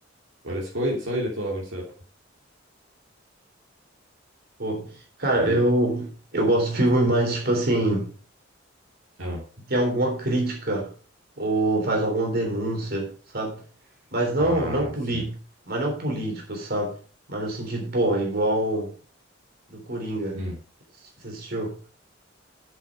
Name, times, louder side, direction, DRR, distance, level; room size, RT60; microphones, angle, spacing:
voice 1, 0.4-1.9 5.3-5.6 9.2-9.4 14.4-15.3 20.3-20.6, equal, 75° right, 3.0 m, -30 dB
voice 2, 4.6-4.9 5.2-8.1 9.7-10.9 11.4-13.6 14.1-15.4 15.7-17.0 17.3-18.9 19.7-20.4 21.2-21.8, right 1 dB, 55° right, 3.5 m, -25 dB
8.2 x 7.0 x 5.0 m
head